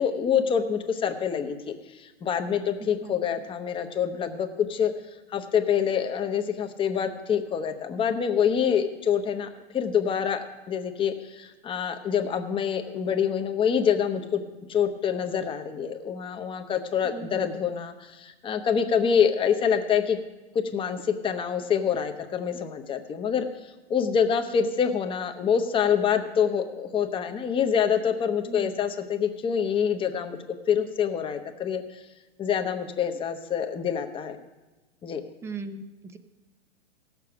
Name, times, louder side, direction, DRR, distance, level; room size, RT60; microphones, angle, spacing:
voice 1, 0.0-4.9 5.3-9.5 9.7-14.4 14.7-20.2 20.7-23.5 23.9-30.4 30.7-32.0 32.4-34.4 35.0-35.2, left 7 dB, 15° left, 7 dB, 0.8 m, -26 dB
voice 2, 17.0-17.5 28.4-28.7 35.4-35.8 36.1-36.2, right 4 dB, 10° right, 11 dB, 0.4 m, -38 dB
16.5 x 6.9 x 5.8 m, 1.2 s
hypercardioid pair, 130°, 33 cm